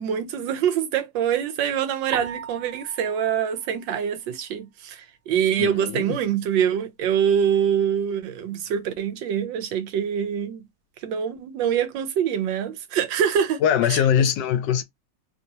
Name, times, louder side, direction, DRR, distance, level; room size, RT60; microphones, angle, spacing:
voice 1, 0.0-10.6 11.0-13.6 13.9-14.3, right 8 dB, 80° right, 1.4 m, -25 dB
sound 1, 2.1-4.6, right 6 dB, 60° right, 1.0 m, -39 dB
voice 2, 5.6-6.2 13.6-14.8, left 9 dB, 75° left, 1.2 m, -22 dB
3.3 x 2.7 x 2.8 m
omnidirectional pair, 2.0 m